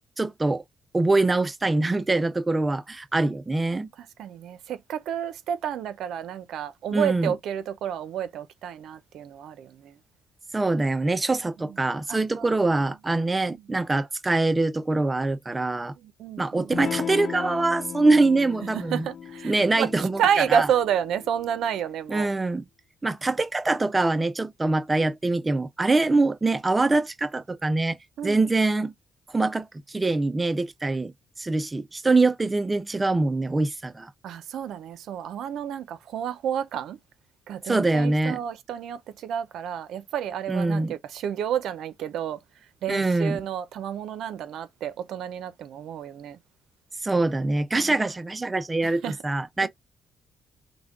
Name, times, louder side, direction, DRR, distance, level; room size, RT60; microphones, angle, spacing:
voice 1, 0.2-0.6 0.9-3.9 6.9-7.3 10.5-15.9 16.4-19.0 19.4-20.7 22.1-22.6 23.0-28.0 28.2-28.9 29.3-34.1 37.7-38.4 40.5-40.9 42.9-43.4 47.0-49.7, right 2 dB, 20° right, 0.4 m, -24 dB
voice 2, 4.0-10.0 11.6-12.5 13.5-13.7 16.0-16.8 18.6-22.3 28.2-28.4 34.2-37.0 37.5-42.4 42.8-46.4 47.8-48.0 48.8-49.2 49.6-49.7, right 9 dB, 80° right, 0.6 m, -30 dB
Electric guitar / Strum, 16.7-21.8, left 8 dB, 50° left, 0.3 m, -36 dB
6.1 x 2.2 x 3.6 m
cardioid pair, 90°, 0 cm